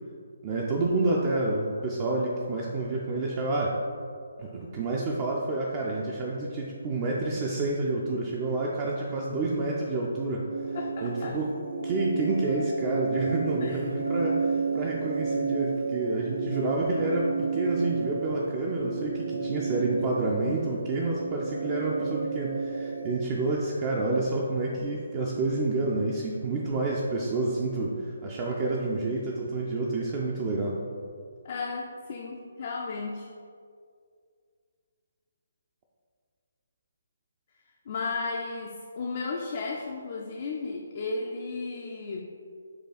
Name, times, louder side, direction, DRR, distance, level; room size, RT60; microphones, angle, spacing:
voice 1, 0.4-3.7 4.4-10.5 11.0-11.5 11.8-30.8, right 2 dB, 30° right, -2 dB, 0.4 m, -29 dB
sound 1, 10.5-23.2, right 4 dB, 85° right, 0.6 m, -32 dB
voice 2, 10.7-11.4 13.6-13.9 31.4-33.3 37.9-42.2, left 3 dB, 45° left, 0 dB, 0.4 m, -34 dB
4.7 x 2.4 x 4.0 m, 2.2 s
figure-of-eight pair, 145°, 0 cm